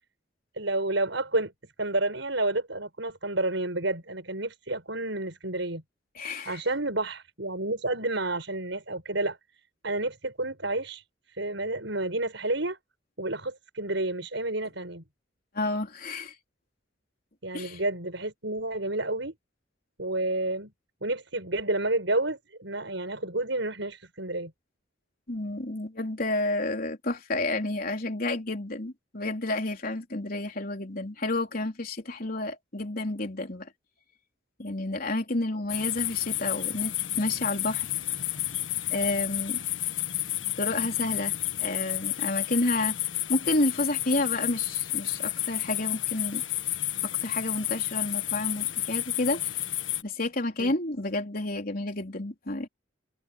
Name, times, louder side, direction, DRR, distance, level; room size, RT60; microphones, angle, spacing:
voice 1, 0.6-1.5 1.8-5.8 6.5-9.4 9.8-12.8 13.2-15.0 17.4-19.3 20.0-20.7 21.0-24.5 50.6-50.7, right 2 dB, 70° right, 7.9 m, -30 dB
voice 2, 6.2-6.6 15.5-16.4 17.5-17.8 25.3-33.7 34.6-37.9 38.9-39.6 40.6-43.0 43.3-46.4 47.0-49.5 50.0-52.7, left 2 dB, 50° left, 3.8 m, -30 dB
sound 1, 35.7-50.0, left 14 dB, 90° left, 1.6 m, -31 dB
head